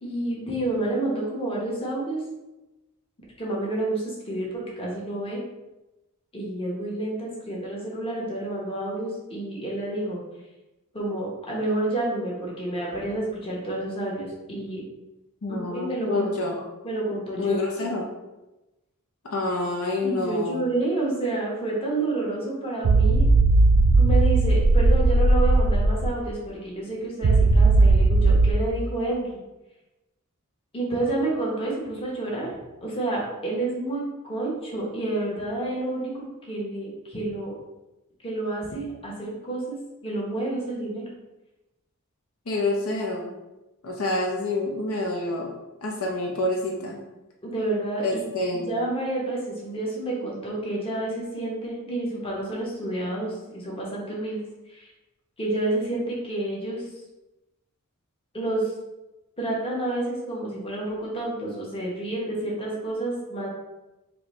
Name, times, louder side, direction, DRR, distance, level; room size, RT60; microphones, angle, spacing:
voice 1, 0.0-2.2 3.4-5.4 6.3-10.2 10.9-14.8 15.6-17.9 20.0-23.3 24.0-29.4 30.7-32.5 32.8-37.5 38.2-41.0 47.4-48.2 48.5-54.4 54.7-54.9 55.4-56.9 58.3-58.7 59.4-63.5, right 2 dB, 25° left, -4 dB, 1.0 m, -29 dB
voice 2, 15.4-16.6 17.4-18.1 19.2-20.6 42.5-43.3 43.8-47.0 48.0-48.7, left 2 dB, 70° left, -1 dB, 0.6 m, -27 dB
sound 1, 22.8-26.1 27.2-28.5, right 2 dB, 80° right, 0.4 m, -17 dB
4.5 x 2.7 x 3.1 m, 1.0 s
head